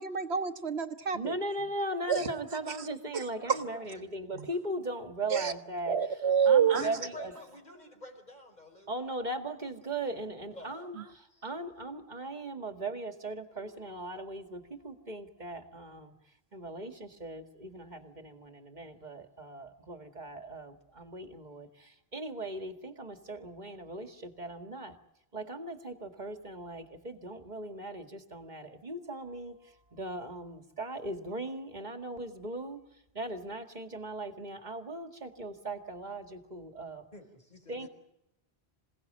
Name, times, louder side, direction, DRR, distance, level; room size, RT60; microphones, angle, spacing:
voice 1, 0.0-1.3 2.1-2.3 3.1-3.2 3.5-3.6 4.3-4.5 5.3-5.5 5.9-6.8, right 7 dB, 80° right, 6 dB, 1.7 m, -27 dB
voice 2, 1.1-6.0 6.5-7.3 8.9-16.1 16.5-25.0 25.3-32.8 33.1-37.1 37.7-37.9, right 2 dB, 45° right, 7 dB, 2.2 m, -39 dB
voice 3, 3.4-4.0 6.8-8.9 9.2-9.3 10.5-10.7 11.3-11.5 37.1-37.9, left 1 dB, 40° left, 5 dB, 4.8 m, -48 dB
27.0 x 17.5 x 8.8 m, 0.85 s
omnidirectional pair, 1.1 m